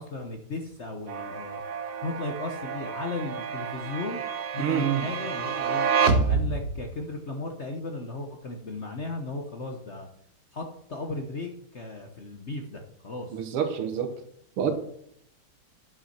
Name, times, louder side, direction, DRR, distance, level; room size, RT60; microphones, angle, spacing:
voice 1, 0.0-1.6 2.0-4.2 4.5-5.9 6.3-10.1 10.5-13.4, left 2 dB, 45° left, 3 dB, 0.9 m, -35 dB
sound 1, 1.1-7.0, right 5 dB, 55° right, 1.0 m, -28 dB
voice 2, 4.6-5.0 13.3-14.1 14.6-14.7, right 9 dB, 90° right, 6 dB, 2.2 m, -27 dB
9.6 x 5.7 x 5.8 m, 0.70 s
omnidirectional pair, 2.4 m